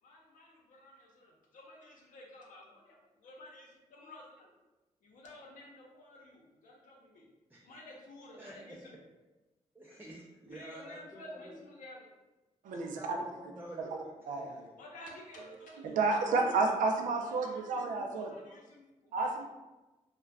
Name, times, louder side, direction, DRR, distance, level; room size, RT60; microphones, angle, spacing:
voice 1, 0.0-4.5 5.0-7.3 7.6-9.0 10.5-12.1 14.8-16.6 17.2-17.9 18.2-19.4, left 1 dB, 85° left, -2 dB, 0.7 m, -52 dB
voice 2, 8.3-8.8 9.0-9.1 9.7-11.6 12.7-14.1 14.4-14.8, right 1 dB, 15° right, -5 dB, 0.4 m, -50 dB
voice 3, 12.6-13.2 14.3-14.6 15.5-15.6 15.8-18.3 19.1-19.4, right 3 dB, 90° right, 2 dB, 0.4 m, -31 dB
2.4 x 2.1 x 3.3 m, 1.1 s
cardioid pair, 85°, 13 cm